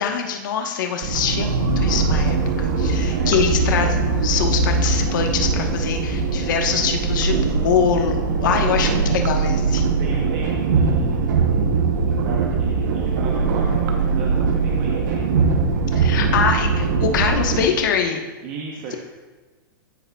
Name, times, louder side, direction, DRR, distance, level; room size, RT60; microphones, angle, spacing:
voice 1, 0.0-9.8 15.9-18.2, left 7 dB, 65° left, 3 dB, 1.2 m, -23 dB
sound 1, 1.0-17.6, right 4 dB, 60° right, 0.9 m, -21 dB
voice 2, 8.8-9.2 10.0-15.3 16.1-16.9 18.4-18.9, right 5 dB, 30° right, -2 dB, 0.9 m, -35 dB
14.0 x 6.4 x 2.3 m, 1.3 s
supercardioid pair, 165°, 11 cm